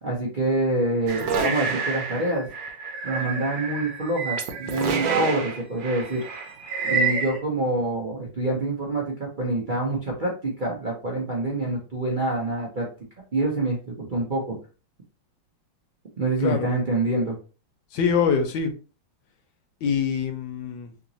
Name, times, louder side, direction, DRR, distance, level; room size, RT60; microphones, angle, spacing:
voice 1, 0.0-2.5 3.0-6.2 6.8-12.9 13.3-14.6 16.2-17.4, right 2 dB, 55° right, 0.5 m, -26 dB
sound 1, 1.1-7.4, right 5 dB, 70° right, 1.4 m, -28 dB
voice 2, 17.9-18.7 19.8-20.9, left 6 dB, 70° left, 1.4 m, -24 dB
3.6 x 3.0 x 2.7 m
omnidirectional pair, 2.2 m